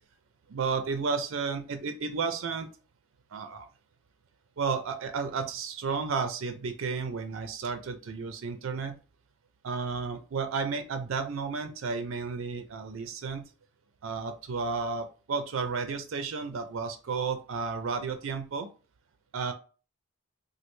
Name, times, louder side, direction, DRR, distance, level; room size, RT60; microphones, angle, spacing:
voice 1, 0.5-2.7 3.3-3.7 4.6-9.0 9.6-13.4 14.0-18.7 19.3-19.5, right 5 dB, 70° right, 8 dB, 0.4 m, -32 dB
3.1 x 2.3 x 3.2 m, 0.35 s
head